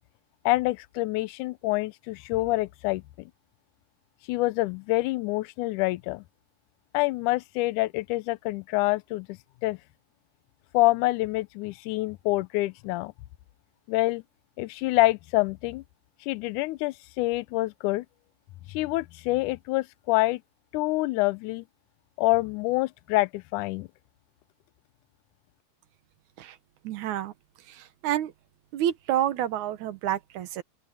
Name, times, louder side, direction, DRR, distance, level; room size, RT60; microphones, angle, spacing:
voice 1, 0.5-3.3 4.3-6.2 6.9-9.8 10.7-13.1 13.9-14.2 14.6-15.8 16.3-18.1 18.7-20.4 20.7-21.6 22.2-23.9, left 20 dB, 80° left, 2.0 m, -26 dB
voice 2, 26.8-27.3 27.7-28.3 28.7-30.6, right 11 dB, 70° right, 2.4 m, -29 dB
open air
omnidirectional pair, 3.8 m